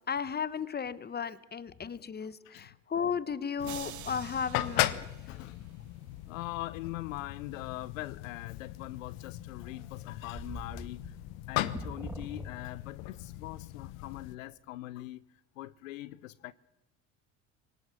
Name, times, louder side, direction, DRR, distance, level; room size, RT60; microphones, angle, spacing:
voice 1, 0.1-5.1, left 7 dB, 25° left, 1.2 m, -35 dB
voice 2, 2.2-2.7 3.6-3.7 5.3-5.7 6.3-11.2 11.5-15.2 15.6-16.5, left 17 dB, 85° left, 0.7 m, -42 dB
sound 1, 3.6-14.4, left 16 dB, 70° left, 1.1 m, -38 dB
sound 2, 3.6-6.0, right 11 dB, 50° right, 1.5 m, -48 dB
sound 3, 9.6-13.0, right 2 dB, 5° right, 0.8 m, -44 dB
26.0 x 18.0 x 6.3 m
hypercardioid pair, 70°, 39 cm